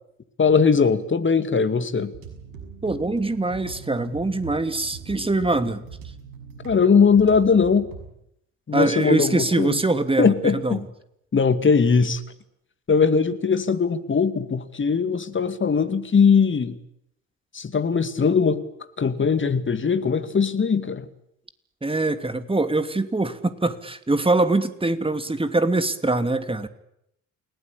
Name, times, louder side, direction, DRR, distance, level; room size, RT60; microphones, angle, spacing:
voice 1, 0.4-2.1 6.6-7.9 8.7-9.8 10.2-10.9 11.3-12.2 12.9-16.8 17.5-18.6 19.0-21.1, left 5 dB, 30° left, 11 dB, 2.4 m, -20 dB
sound 1, 2.1-8.1, right 6 dB, 70° right, 6.5 m, -41 dB
voice 2, 2.8-5.8 8.7-10.8 21.8-26.7, right 2 dB, 15° right, 10 dB, 2.8 m, -23 dB
29.5 x 18.5 x 8.7 m, 0.78 s
figure-of-eight pair, 50°, 39 cm